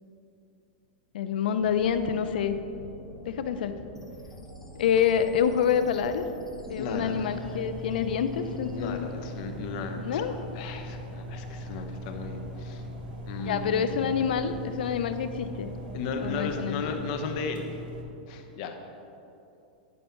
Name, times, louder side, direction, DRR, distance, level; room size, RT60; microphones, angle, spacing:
voice 1, 1.1-2.6 3.3-3.7 4.7-6.2 6.7-9.1 10.0-10.4 13.5-15.7 16.2-17.0, left 8 dB, 80° left, 10 dB, 0.5 m, -27 dB
sound 1, 1.6-16.9, right 1 dB, 25° right, 1.2 m, -46 dB
sound 2, 4.0-8.9, left 1 dB, 5° left, 0.7 m, -52 dB
voice 2, 6.8-7.6 8.7-10.2 10.5-12.9 13.3-14.3 14.8-15.0 15.9-17.7 18.3-18.8, left 4 dB, 50° left, 5 dB, 0.9 m, -35 dB
sound 3, 6.9-18.0, equal, 80° right, 1.4 m, -40 dB
10.0 x 5.4 x 4.4 m, 2.8 s
supercardioid pair, 145°, 5 cm